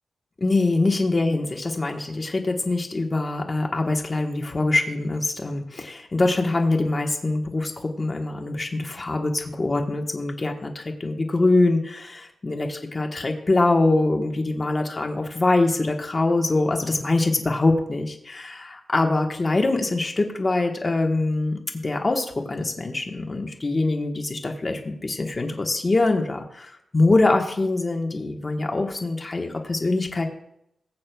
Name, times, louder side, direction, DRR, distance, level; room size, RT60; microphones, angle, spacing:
voice 1, 0.4-30.3, left 2 dB, 25° left, 3 dB, 1.3 m, -24 dB
19.5 x 8.5 x 2.3 m, 0.78 s
wide cardioid pair, 165°, 0 cm